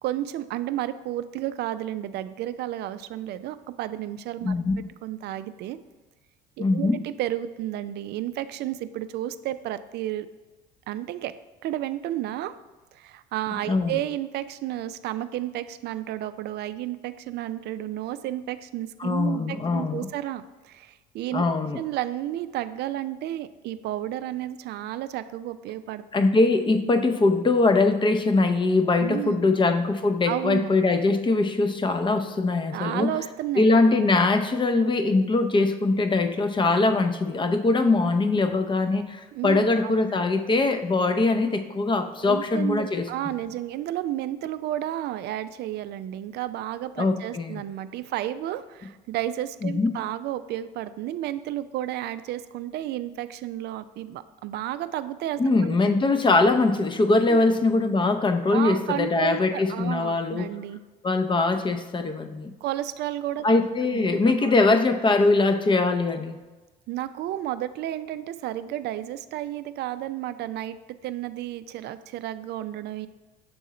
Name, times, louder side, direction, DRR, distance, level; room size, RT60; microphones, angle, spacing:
voice 1, 0.0-4.5 5.0-5.8 6.6-10.3 10.9-11.3 11.6-12.5 12.9-21.4 21.8-26.0 29.0-29.5 30.3-30.7 32.7-33.7 39.3-40.0 42.2-55.4 57.3-57.4 58.5-60.8 62.6-63.5 63.9-64.1 64.4-64.5 66.9-70.8 71.0-73.1, right 13 dB, 55° right, 13 dB, 0.4 m, -32 dB
voice 2, 4.4-4.7 6.6-7.0 13.7-14.0 19.0-20.1 21.3-21.8 26.1-33.1 33.6-43.1 47.0-47.6 49.6-49.9 55.4-60.5 61.0-62.5 63.4-66.4, left 3 dB, 25° left, 7 dB, 0.6 m, -22 dB
6.9 x 3.6 x 4.1 m, 1.2 s
hypercardioid pair, 70°, 21 cm